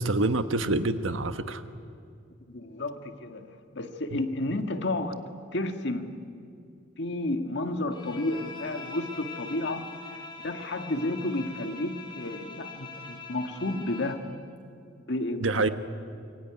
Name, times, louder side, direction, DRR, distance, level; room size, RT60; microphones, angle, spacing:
voice 1, 0.0-1.6 4.1-4.2 15.4-15.7, right 2 dB, 90° right, 10 dB, 1.3 m, -26 dB
voice 2, 2.5-5.2 5.5-6.2 7.0-9.9 10.4-14.2 15.1-15.7, left 2 dB, 65° left, 7 dB, 1.9 m, -31 dB
Bowed string instrument, 7.9-14.3, left 4 dB, 25° left, 4.3 m, -43 dB
26.0 x 23.5 x 9.8 m, 2.4 s
head